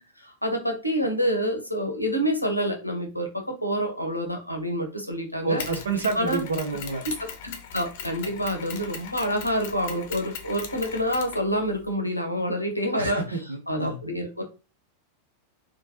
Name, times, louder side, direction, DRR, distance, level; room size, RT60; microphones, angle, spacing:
voice 1, 0.2-5.6 6.1-6.4 7.1-13.4 13.7-14.4, equal, 90° left, 3 dB, 0.7 m, -27 dB
voice 2, 5.4-7.0 12.9-14.0, right 3 dB, 70° right, 5 dB, 0.7 m, -29 dB
Mechanisms, 5.6-11.9, left 7 dB, 50° left, 0.6 m, -39 dB
3.1 x 2.2 x 2.8 m, 0.30 s
figure-of-eight pair, 90°, 0 cm